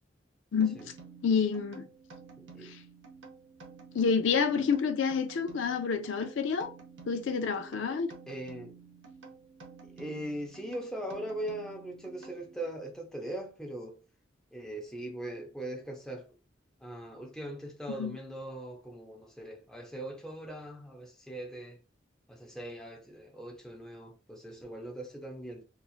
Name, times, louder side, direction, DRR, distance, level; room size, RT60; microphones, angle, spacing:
sound 1, 0.6-12.8, right 5 dB, 70° right, 0.7 m, -51 dB
voice 1, 1.2-1.9 2.6-2.8 3.9-6.7 7.0-8.1 18.0-18.2, left 6 dB, 75° left, 0.4 m, -28 dB
voice 2, 2.4-2.7 8.3-8.7 10.0-14.0 14.5-16.3 16.8-21.8 22.3-25.6, right 1 dB, 5° left, 0.6 m, -40 dB
3.0 x 2.4 x 2.4 m
head